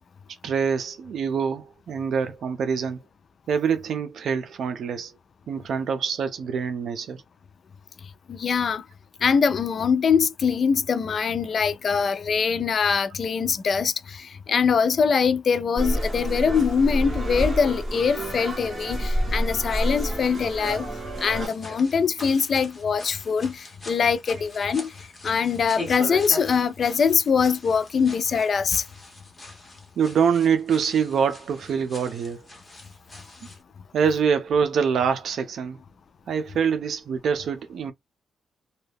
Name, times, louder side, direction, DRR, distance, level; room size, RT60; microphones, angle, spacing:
voice 1, 0.4-3.0 3.5-5.1 5.5-7.2 30.0-32.4 33.9-35.8 36.3-37.9, right 6 dB, 70° right, 0.5 m, -25 dB
voice 2, 8.3-8.9 9.2-20.9 21.2-24.9 25.2-28.9, left 6 dB, 45° left, 0.4 m, -23 dB
sound 1, 15.8-21.5, equal, 20° right, 1.6 m, -28 dB
sound 2, 21.4-33.6, left 1 dB, 20° left, 1.1 m, -42 dB
2.7 x 2.3 x 3.4 m
wide cardioid pair, 140°, 0 cm